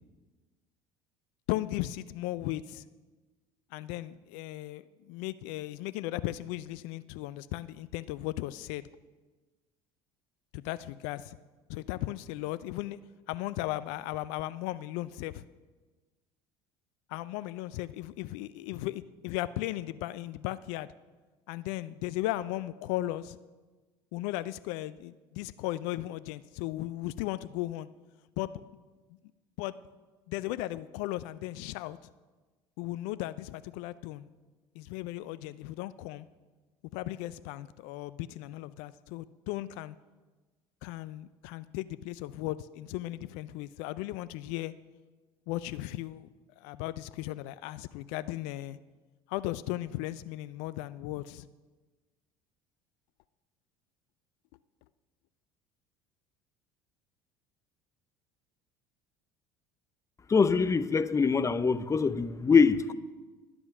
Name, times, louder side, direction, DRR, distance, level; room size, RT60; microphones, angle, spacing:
voice 1, 1.5-2.8 3.7-8.9 10.5-11.4 11.7-13.0 13.3-15.4 17.1-20.9 21.5-23.4 24.1-27.9 28.4-28.5 29.6-29.8 30.3-32.0 32.8-34.3 34.8-36.3 36.9-40.0 40.8-44.7 45.5-46.3 46.6-48.8 49.3-51.5, left 16 dB, 65° left, 0.4 m, -36 dB
voice 2, 60.3-62.9, left 5 dB, 20° left, 0.6 m, -24 dB
11.0 x 7.9 x 6.0 m
hypercardioid pair, 70°, 13 cm